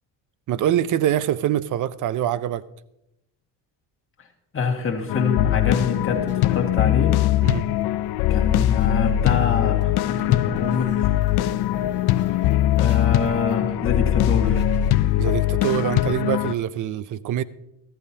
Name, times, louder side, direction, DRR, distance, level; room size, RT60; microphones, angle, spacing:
voice 1, 0.5-2.6 7.4-7.6 15.2-17.4, right 11 dB, 45° right, 0.5 m, -24 dB
voice 2, 4.5-7.2 8.3-11.1 12.8-14.7, left 5 dB, 30° left, 1.9 m, -26 dB
sound 1, 5.1-16.5, left 13 dB, 60° left, 0.5 m, -21 dB
sound 2, 5.6-15.5, right 3 dB, 25° right, 3.0 m, -43 dB
14.0 x 14.0 x 2.8 m
cardioid pair, 125°, 45 cm